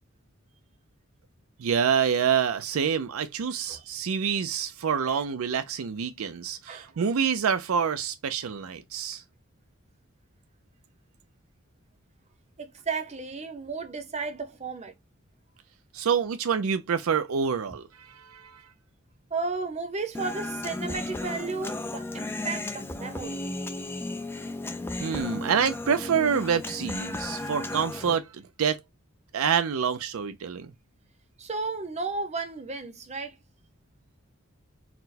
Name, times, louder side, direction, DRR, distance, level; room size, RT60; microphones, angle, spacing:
voice 1, 1.6-9.2 15.9-18.6 25.0-28.8 29.3-30.7, right 7 dB, 80° right, 0.4 m, -27 dB
voice 2, 12.6-14.9 19.3-23.4 31.4-33.3, right 4 dB, 30° right, 0.7 m, -33 dB
Human voice, 20.1-28.2, left 2 dB, 10° left, 0.4 m, -34 dB
4.2 x 2.1 x 4.0 m
head